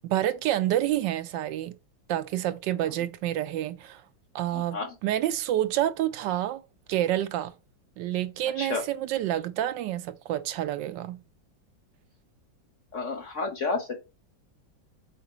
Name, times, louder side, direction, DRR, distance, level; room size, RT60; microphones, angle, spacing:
voice 1, 0.0-1.8 2.1-4.0 4.3-6.6 6.9-7.5 8.0-11.2, right 12 dB, 80° right, 1.2 m, -28 dB
voice 2, 4.5-4.9 8.6-8.8 12.9-14.0, left 3 dB, 55° left, 0.9 m, -31 dB
7.7 x 4.4 x 3.0 m
omnidirectional pair, 2.0 m